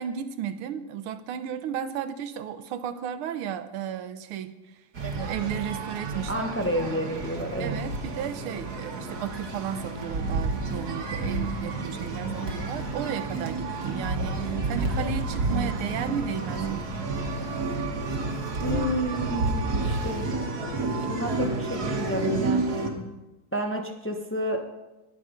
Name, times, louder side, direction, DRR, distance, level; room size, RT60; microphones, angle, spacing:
voice 1, 0.0-4.5 5.1-6.3 6.7-6.8 7.6-16.9, right 9 dB, 85° right, 11 dB, 1.7 m, -34 dB
sound 1, 5.0-22.9, right 3 dB, 50° right, 1.9 m, -30 dB
voice 2, 6.3-7.8 18.6-20.3 21.1-23.1 23.5-24.6, equal, 15° left, 3 dB, 0.4 m, -30 dB
20.0 x 6.8 x 5.1 m, 1.0 s
omnidirectional pair, 2.3 m